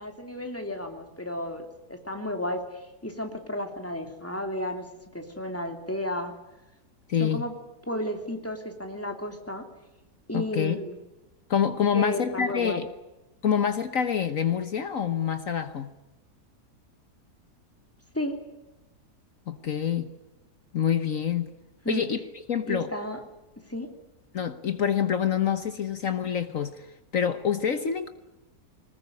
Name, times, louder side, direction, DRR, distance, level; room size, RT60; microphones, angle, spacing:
voice 1, 0.0-4.9 5.1-6.3 7.2-7.5 7.9-9.6 10.3-10.9 11.9-12.8 18.1-18.3 21.8-22.0 22.7-23.2 23.7-23.9, left 1 dB, 10° left, 4 dB, 3.0 m, -33 dB
voice 2, 7.1-7.5 10.3-10.8 11.5-12.9 13.4-15.9 19.5-20.1 20.7-21.5 21.9-22.2 22.5-22.9 24.3-26.9 27.1-28.1, left 8 dB, 55° left, 10 dB, 1.4 m, -26 dB
21.0 x 20.0 x 9.7 m, 0.99 s
omnidirectional pair, 1.7 m